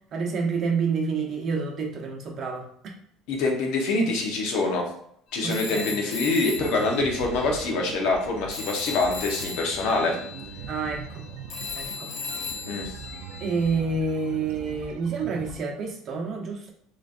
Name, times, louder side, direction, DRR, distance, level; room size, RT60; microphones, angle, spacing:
voice 1, 0.1-2.9 5.4-6.0 10.7-11.3 11.7-12.1 13.4-16.7, right 4 dB, 35° right, 0 dB, 0.8 m, -28 dB
voice 2, 3.3-4.9 5.3-10.1 12.7-12.9, left 3 dB, 70° left, 1 dB, 0.9 m, -25 dB
Telephone, 5.5-8.2 8.5-13.8, left 6 dB, 45° left, 0.7 m, -37 dB
sound 1, 6.6-15.6, right 7 dB, 80° right, 0.5 m, -41 dB
3.9 x 3.1 x 2.5 m, 0.69 s
cardioid pair, 155°, 0 cm